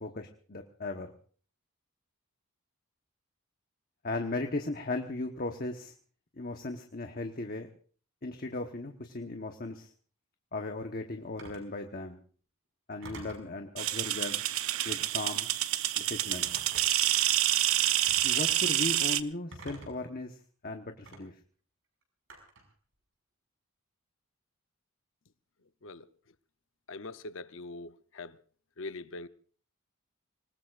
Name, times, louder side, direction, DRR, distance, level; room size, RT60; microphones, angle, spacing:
voice 1, 0.0-1.1 4.0-5.9 6.4-7.7 8.2-9.9 10.5-12.2 12.9-14.4 14.8-15.5 15.9-16.5 18.2-20.4 20.6-21.3, left 2 dB, 45° left, 1.1 m, -37 dB
Telephone, 11.4-11.7 13.0-13.5 14.8-15.1 16.3-17.1 18.1-18.4 19.5-20.1 21.0-21.2 22.3-22.7, right 2 dB, 60° right, 5.7 m, -48 dB
sound 1, 13.8-19.2, right 13 dB, 75° right, 0.7 m, -28 dB
voice 2, 26.9-28.4 28.8-29.3, left 3 dB, 60° left, 0.7 m, -42 dB
27.0 x 19.5 x 2.5 m
head